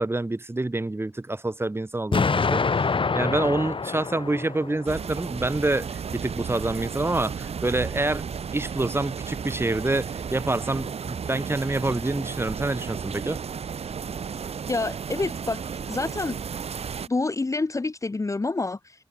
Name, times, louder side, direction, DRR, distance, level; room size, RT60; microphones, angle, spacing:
voice 1, 0.0-8.3 8.5-13.4, right 2 dB, 25° right, 2.8 m, -27 dB
Explosion, 2.1-5.1, left 4 dB, 55° left, 4.3 m, -26 dB
sound 1, 4.9-17.1, right 6 dB, 85° right, 4.0 m, -33 dB
voice 2, 14.7-16.4 17.1-19.0, left 3 dB, 30° left, 1.0 m, -28 dB
cardioid pair, 70°, 10 cm